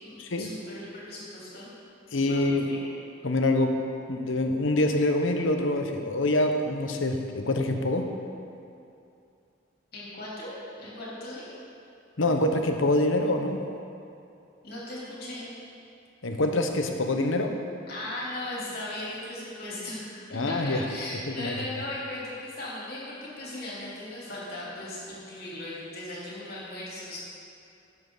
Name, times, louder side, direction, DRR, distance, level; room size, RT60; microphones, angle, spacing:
voice 1, 0.0-1.7 2.1-2.9 9.9-11.6 14.6-15.5 17.9-27.2, left 1 dB, 50° left, -7 dB, 3.3 m, -38 dB
voice 2, 2.1-2.7 3.2-3.8 4.1-8.1 12.2-13.6 16.2-17.5 20.3-20.8 21.3-21.5, left 2 dB, 85° left, 4 dB, 1.1 m, -25 dB
18.5 x 7.7 x 4.0 m, 2.6 s
head